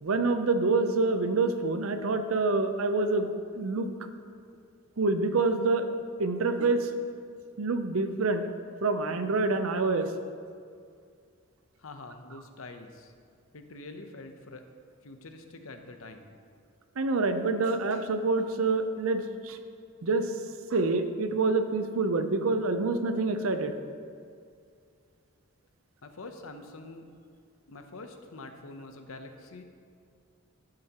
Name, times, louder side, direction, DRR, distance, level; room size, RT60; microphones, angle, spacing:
voice 1, 0.0-3.9 5.0-5.9 6.2-6.9 7.6-8.4 8.8-10.1 17.0-19.6 20.0-20.3 20.7-23.8, right 3 dB, 70° right, 8 dB, 0.6 m, -27 dB
voice 2, 11.8-13.1 13.5-14.6 15.0-16.3 26.0-27.1 27.7-29.6, left 2 dB, 70° left, 6 dB, 0.8 m, -45 dB
15.0 x 7.7 x 3.0 m, 2.3 s
head